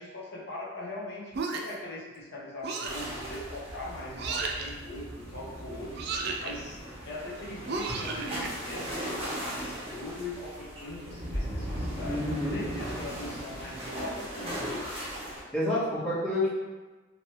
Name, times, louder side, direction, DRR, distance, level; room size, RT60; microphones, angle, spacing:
voice 1, 0.0-6.0 6.4-12.2 12.5-14.7, left 1 dB, 60° left, -4 dB, 0.8 m, -41 dB
sound 1, 1.3-1.9 2.6-3.1 4.2-4.7 5.9-6.5 7.7-8.5, right 4 dB, 60° right, 0.4 m, -33 dB
sound 2, 2.8-15.4, equal, 30° right, 1.1 m, -38 dB
voice 2, 12.1-12.6 15.3-16.5, left 1 dB, 5° left, -10 dB, 1.0 m, -29 dB
3.0 x 2.8 x 2.9 m, 1.3 s
head